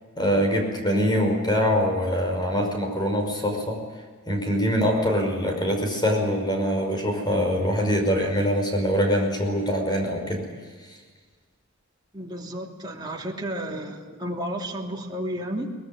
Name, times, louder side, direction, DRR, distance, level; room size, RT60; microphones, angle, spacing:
voice 1, 0.2-3.8 4.3-10.4, equal, 20° left, 3 dB, 5.5 m, -23 dB
voice 2, 12.1-15.7, right 1 dB, 20° right, -1 dB, 3.0 m, -32 dB
23.0 x 20.5 x 9.1 m, 1.5 s
head